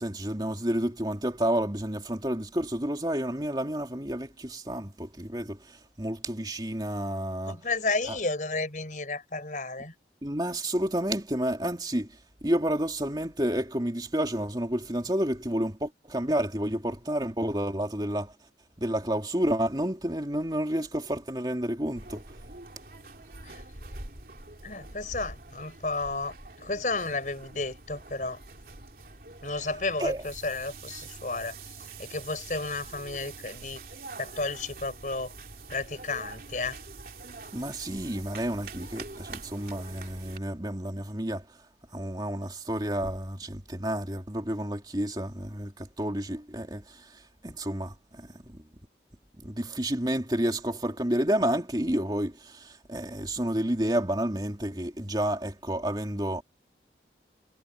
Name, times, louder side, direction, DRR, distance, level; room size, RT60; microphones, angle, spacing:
voice 1, 0.0-7.6 8.1-8.2 10.2-12.1 12.4-18.3 18.8-22.2 29.5-29.7 30.0-30.2 37.5-41.5 41.9-48.7 49.4-56.4, right 1 dB, 25° right, 2.9 m, -30 dB
voice 2, 7.5-9.9 23.4-23.6 24.6-28.4 29.4-31.5 32.0-33.8 34.2-35.3 35.7-36.8, left 3 dB, 45° left, 5.4 m, -32 dB
sound 1, 21.9-40.4, right 3 dB, 55° right, 3.2 m, -45 dB
head